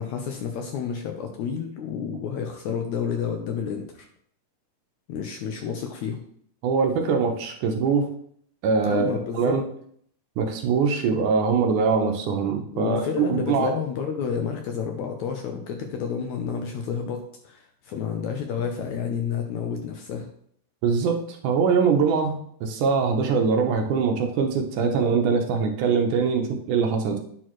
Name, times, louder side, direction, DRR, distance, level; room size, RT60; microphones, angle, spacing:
voice 1, 0.0-4.1 5.1-6.2 8.9-9.6 12.7-20.3, left 7 dB, 75° left, 4 dB, 1.8 m, -30 dB
voice 2, 6.6-8.1 8.6-9.6 10.4-13.7 20.8-27.2, right 5 dB, 75° right, 4 dB, 2.1 m, -23 dB
9.2 x 6.2 x 3.1 m, 0.64 s
omnidirectional pair, 3.9 m